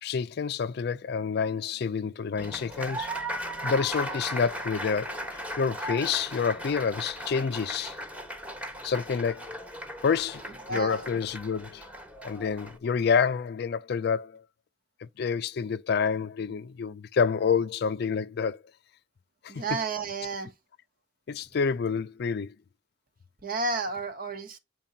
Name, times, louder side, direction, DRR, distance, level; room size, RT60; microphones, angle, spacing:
voice 1, 0.0-3.1 3.6-7.9 8.8-9.5 10.0-11.8 12.2-14.4 15.2-18.6 19.4-19.8 21.3-22.5, left 6 dB, 60° left, 0.4 m, -28 dB
Applause, 2.4-12.8, equal, 10° right, 1.3 m, -37 dB
voice 2, 10.7-11.1 19.5-20.5 23.4-24.6, right 3 dB, 50° right, 1.3 m, -31 dB
9.0 x 4.6 x 2.7 m
head